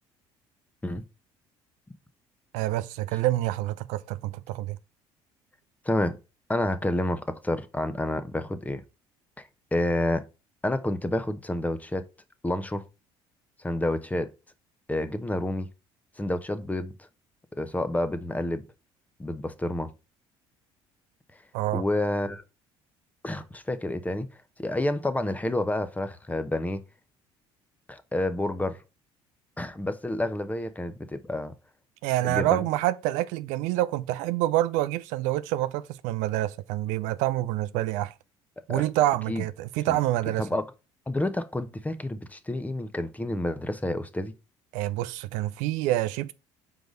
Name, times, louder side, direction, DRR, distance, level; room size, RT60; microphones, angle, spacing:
voice 1, 2.5-4.8 21.5-21.8 32.0-38.1 38.7-40.5 44.7-46.3, right 15 dB, 80° right, 0.5 m, -27 dB
voice 2, 5.8-6.2 6.5-8.8 9.7-10.2 10.6-12.1 12.4-12.8 13.6-14.3 14.9-15.7 16.2-16.9 17.6-18.6 19.2-19.9 21.7-22.4 23.2-24.3 24.6-26.8 27.9-28.8 29.6-31.5 32.2-32.6 38.7-38.8 39.3-39.4 39.9-40.0 40.4-40.6 41.1-44.3, left 1 dB, 10° left, 0.8 m, -29 dB
4.7 x 4.0 x 5.2 m
supercardioid pair, 70°, 12 cm